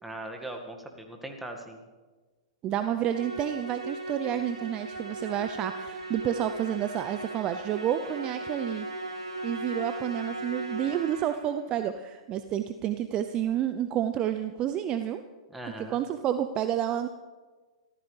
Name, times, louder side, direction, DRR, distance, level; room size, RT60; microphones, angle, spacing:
voice 1, 0.0-1.8 15.5-16.0, right 1 dB, 5° right, 3 dB, 1.9 m, -40 dB
voice 2, 2.6-8.9 9.4-15.2 15.8-17.1, right 10 dB, 30° right, 9 dB, 0.7 m, -30 dB
Musical instrument, 3.1-11.6, right 2 dB, 75° right, 3.7 m, -37 dB
26.5 x 14.5 x 3.4 m, 1.3 s
figure-of-eight pair, 105°, 3 cm